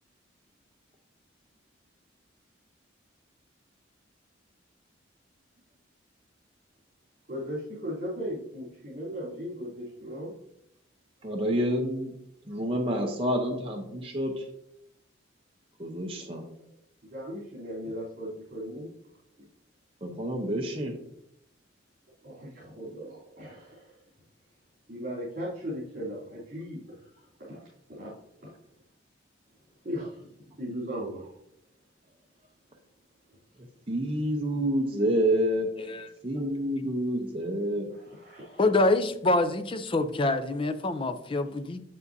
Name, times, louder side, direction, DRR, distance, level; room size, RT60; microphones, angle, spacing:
voice 1, 7.3-10.3 17.1-18.9 22.2-24.0 24.9-28.1 28.4-28.6 29.8-30.3 30.6-31.2 37.9-38.7, equal, 50° right, -8 dB, 3.2 m, -37 dB
voice 2, 11.2-12.1 12.5-14.3 15.8-16.4 20.0-20.9 33.9-35.7 36.2-37.9, equal, 30° right, 0 dB, 0.8 m, -28 dB
voice 3, 35.8-36.1 38.6-41.8, left 2 dB, 25° left, 9 dB, 0.5 m, -26 dB
8.0 x 7.3 x 2.7 m, 0.77 s
head